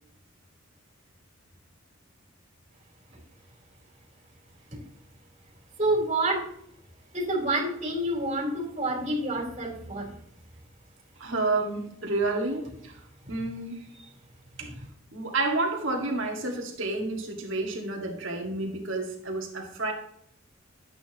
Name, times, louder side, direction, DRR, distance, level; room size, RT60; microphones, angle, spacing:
voice 1, 5.8-6.4 7.1-10.1, right 1 dB, 35° right, -4 dB, 3.8 m, -28 dB
voice 2, 11.2-13.0 13.3-13.9 14.6-14.7 15.1-19.9, right 2 dB, 70° right, 1 dB, 2.0 m, -30 dB
11.5 x 8.8 x 3.0 m, 0.70 s
head